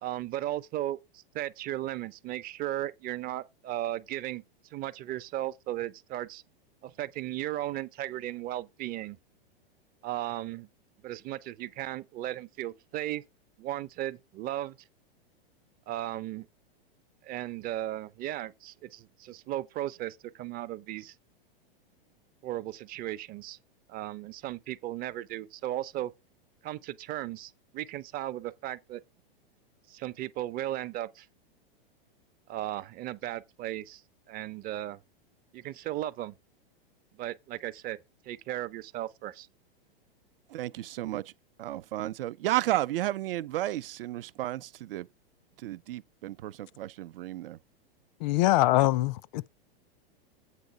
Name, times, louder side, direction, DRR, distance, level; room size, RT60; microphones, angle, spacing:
voice 1, 0.0-4.4 4.7-6.4 6.8-9.2 10.0-10.7 11.0-13.2 13.6-14.8 15.9-16.5 17.2-21.1 22.4-23.6 23.9-26.1 26.6-29.0 29.9-31.3 32.5-34.0 34.3-35.0 35.5-36.4 37.2-38.0 38.3-39.5, right 14 dB, 30° right, 0.6 m, -36 dB
voice 2, 40.5-41.3 41.6-45.1 45.6-47.6, right 15 dB, 65° right, 0.6 m, -32 dB
voice 3, 48.2-49.5, left 17 dB, 50° left, 0.5 m, -23 dB
8.4 x 3.9 x 6.4 m
hypercardioid pair, 120°, 30 cm